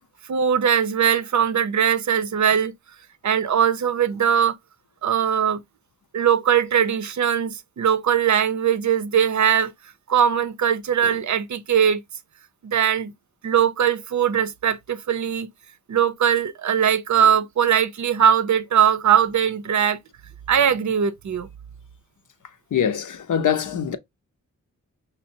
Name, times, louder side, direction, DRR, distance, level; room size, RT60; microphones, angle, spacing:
voice 1, 0.2-2.7 3.2-4.5 5.0-5.6 6.1-9.7 10.1-12.0 12.6-13.1 13.4-15.5 15.9-20.0 20.5-21.5, right 8 dB, 65° right, 0.5 m, -20 dB
voice 2, 22.7-24.0, left 8 dB, 70° left, 0.6 m, -23 dB
5.6 x 2.0 x 2.6 m
wide cardioid pair, 70°, 32 cm